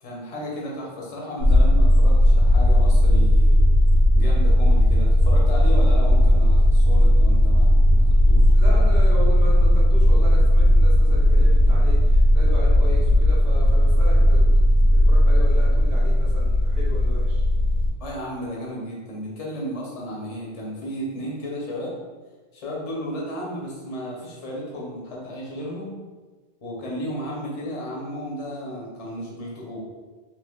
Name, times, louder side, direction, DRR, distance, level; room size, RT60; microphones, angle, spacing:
voice 1, 0.0-3.6 4.1-8.5 18.0-22.0 22.5-26.0 26.6-29.8, equal, 40° left, -4 dB, 0.7 m, -33 dB
sound 1, 1.4-17.9, left 1 dB, 85° right, 1.0 m, -16 dB
voice 2, 8.5-17.4, equal, 65° right, -6 dB, 1.0 m, -35 dB
3.2 x 2.9 x 2.3 m, 1.4 s
omnidirectional pair, 1.1 m